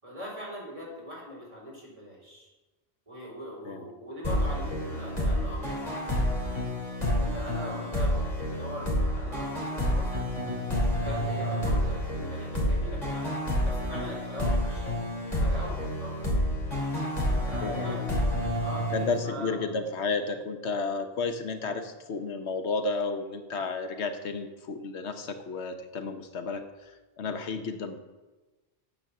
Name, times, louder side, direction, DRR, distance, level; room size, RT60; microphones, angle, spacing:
voice 1, 0.0-2.5 3.1-6.3 7.2-8.1 8.4-10.1 10.8-13.3 13.6-15.0 15.2-16.2 17.4-18.3 18.6-19.6, equal, 30° right, -4 dB, 4.1 m, -41 dB
sound 1, 4.2-19.7, equal, 40° left, 3.0 m, -29 dB
voice 2, 17.4-18.0 18.9-26.9 27.2-28.0, left 4 dB, 85° left, 7 dB, 1.2 m, -32 dB
9.5 x 7.4 x 6.8 m, 1.2 s
omnidirectional pair, 1.1 m